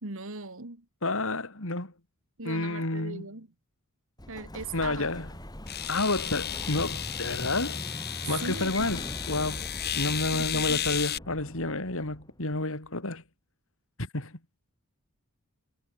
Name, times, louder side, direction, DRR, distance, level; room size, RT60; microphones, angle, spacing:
voice 1, 0.0-0.8 2.4-3.5 4.3-5.2 8.4-8.9 10.3-10.8, right 3 dB, 65° right, 2.6 m, -39 dB
voice 2, 1.0-1.9 2.4-3.3 4.7-5.3 5.9-7.8 8.3-9.6 9.9-13.2 14.0-14.3, left 2 dB, 65° left, 4.0 m, -30 dB
Explosion, 4.2-12.9, left 1 dB, 20° left, 6.6 m, -41 dB
sound 1, 4.8-4.9 5.7-11.2, left 10 dB, 50° left, 6.8 m, -34 dB
head